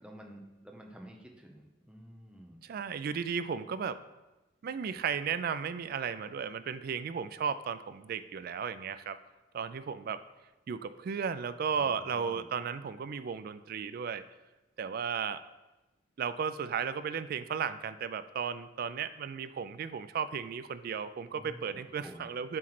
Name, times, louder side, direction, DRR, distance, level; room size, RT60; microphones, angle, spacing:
voice 1, 0.0-2.6 11.8-12.5 21.3-22.3, right 1 dB, 5° right, 1 dB, 0.7 m, -51 dB
voice 2, 2.6-4.0 4.6-9.2 9.5-10.2 10.7-14.2 14.8-15.4 16.2-22.6, right 6 dB, 50° right, 13 dB, 0.3 m, -35 dB
7.7 x 3.2 x 5.8 m, 1.1 s
head